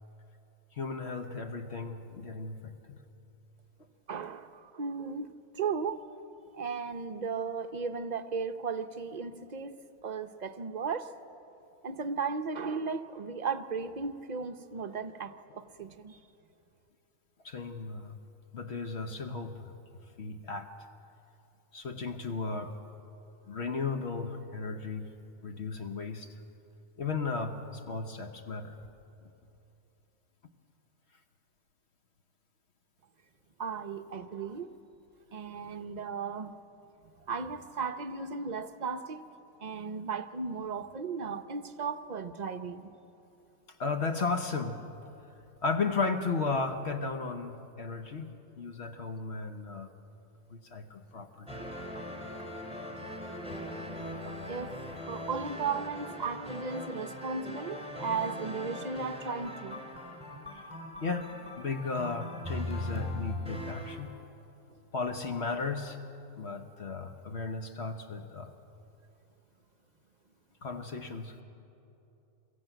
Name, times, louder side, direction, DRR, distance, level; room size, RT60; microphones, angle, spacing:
voice 1, 0.8-3.0 17.4-18.2 18.5-19.7 20.2-20.7 21.7-22.7 23.5-25.2 25.4-26.3 27.0-28.8 43.8-44.8 45.6-48.3 48.6-49.9 50.5-51.6 53.4-53.5 61.0-64.1 64.9-66.0 66.3-68.5 70.6-71.4, left 4 dB, 55° left, 6 dB, 1.3 m, -35 dB
voice 2, 4.1-6.0 6.5-11.1 11.8-16.2 33.6-34.7 35.3-36.6 37.3-39.2 39.6-42.9 52.2-52.4 53.0-53.3 53.6-53.8 54.2-54.7 55.1-59.8, right 5 dB, 40° right, 9 dB, 0.7 m, -36 dB
sound 1, 51.5-63.9, left 1 dB, 5° right, 3.2 m, -40 dB
22.5 x 14.0 x 9.1 m, 2.9 s
omnidirectional pair, 1.4 m